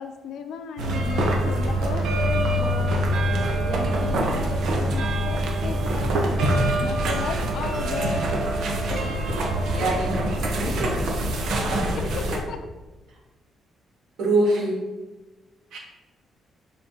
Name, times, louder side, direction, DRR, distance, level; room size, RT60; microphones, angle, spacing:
voice 1, 0.0-3.1 3.6-6.2 6.8-8.3 8.8-9.0 12.0-12.6, left 6 dB, 65° left, 7 dB, 0.6 m, -35 dB
sound 1, 0.8-12.4, right 1 dB, 70° right, 1.0 m, -24 dB
voice 2, 9.7-10.3 10.6-11.0 14.2-14.8 15.7-15.8, right 2 dB, 85° right, -3 dB, 2.0 m, -24 dB
7.2 x 5.1 x 2.9 m, 1.2 s
cardioid pair, 180°, 0 cm